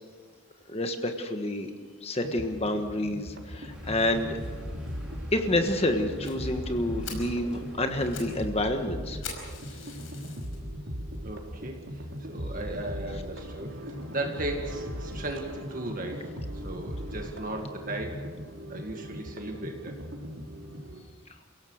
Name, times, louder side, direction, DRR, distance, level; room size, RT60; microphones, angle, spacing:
voice 1, 0.7-1.7 2.0-4.4 5.3-9.2, left 1 dB, 30° left, 6 dB, 1.4 m, -28 dB
sound 1, 2.2-21.0, equal, 65° right, 3.1 m, -39 dB
Car, 3.7-8.8, equal, 5° right, 3.5 m, -44 dB
Fire, 6.2-6.4 6.8-6.9 7.0-7.3 7.9-8.4 8.6-8.7 9.2-10.6 11.2-11.3 11.8-11.9 12.2-12.3 12.6-12.7, left 5 dB, 75° left, 5.3 m, -42 dB
voice 2, 11.2-11.8 12.3-16.3 16.6-18.2 18.7-20.0, right 1 dB, 40° right, 3 dB, 2.0 m, -36 dB
29.5 x 17.0 x 6.5 m, 1.5 s
head